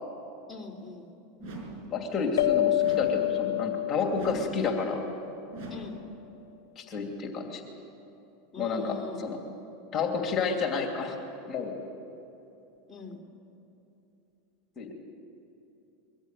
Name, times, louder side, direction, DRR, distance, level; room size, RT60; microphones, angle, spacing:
voice 1, 0.5-1.1 5.7-6.0 8.5-9.4 12.9-13.2, left 4 dB, 5° left, -2 dB, 3.1 m, -42 dB
sound 1, 1.4-2.0 2.8-3.3 4.1-4.7 5.5-6.1, right 2 dB, 55° right, 5.6 m, -41 dB
voice 2, 1.9-5.0 6.8-7.6 8.6-9.4 9.9-11.2 11.5-11.7 14.8-14.9, left 4 dB, 30° left, 2 dB, 2.8 m, -30 dB
sound 2, 2.4-5.4, left 15 dB, 85° left, 0.5 m, -28 dB
23.0 x 15.0 x 9.1 m, 2.9 s
hypercardioid pair, 115°, 0 cm